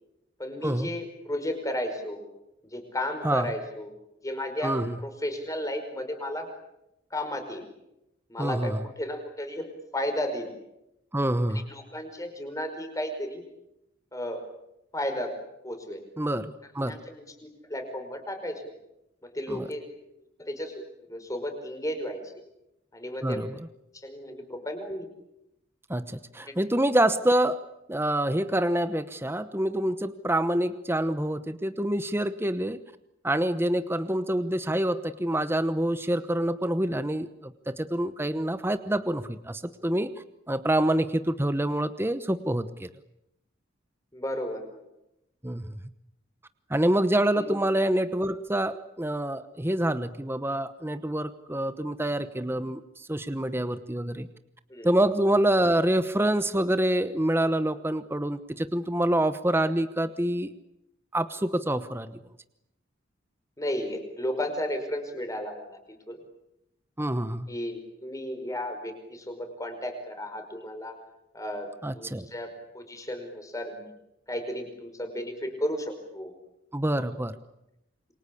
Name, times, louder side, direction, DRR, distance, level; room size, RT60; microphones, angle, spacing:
voice 1, 0.4-2.2 2.7-3.9 4.2-6.5 7.1-7.6 8.3-9.6 9.9-10.5 11.5-13.4 14.1-14.4 14.9-15.3 15.6-16.0 16.8-18.7 19.2-19.9 20.4-22.2 22.9-23.4 23.9-25.1 26.5-26.6 44.1-44.8 47.3-47.5 54.7-54.9 63.6-66.2 67.5-70.9 71.3-71.7 72.0-73.8 74.3-76.3 76.9-77.0, left 1 dB, 15° left, 6 dB, 5.2 m, -34 dB
voice 2, 4.6-5.0 8.4-8.8 11.1-11.7 16.2-17.0 19.5-19.7 23.2-23.7 25.9-27.6 27.9-32.8 33.2-40.1 40.5-42.9 45.4-45.6 46.7-54.3 54.8-60.5 61.1-62.2 67.0-67.5 71.8-72.3 76.7-77.3, right 1 dB, 10° right, 12 dB, 1.0 m, -26 dB
27.5 x 24.0 x 8.5 m, 0.86 s
head